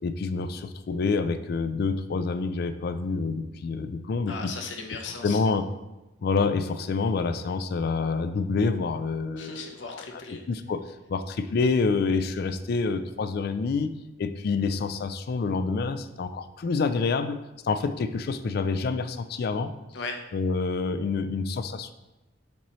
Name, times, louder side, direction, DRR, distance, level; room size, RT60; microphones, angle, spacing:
voice 1, 0.0-4.5 5.2-5.7 6.2-10.2 10.5-10.8 11.1-13.9 14.2-17.4 17.6-19.7 20.3-21.9, left 4 dB, 55° left, 11 dB, 0.3 m, -27 dB
voice 2, 4.3-5.4 9.4-10.4 19.9-20.3, left 4 dB, 75° left, 4 dB, 0.8 m, -37 dB
7.3 x 4.3 x 3.0 m, 1.0 s
head